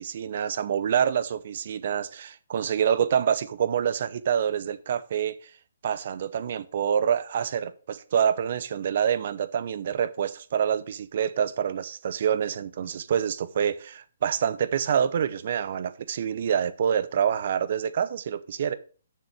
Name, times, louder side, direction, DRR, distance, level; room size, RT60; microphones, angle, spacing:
voice 1, 0.0-5.3 5.8-18.7, right 8 dB, 50° right, 0.8 m, -26 dB
6.8 x 6.3 x 6.5 m
figure-of-eight pair, 135°, 0 cm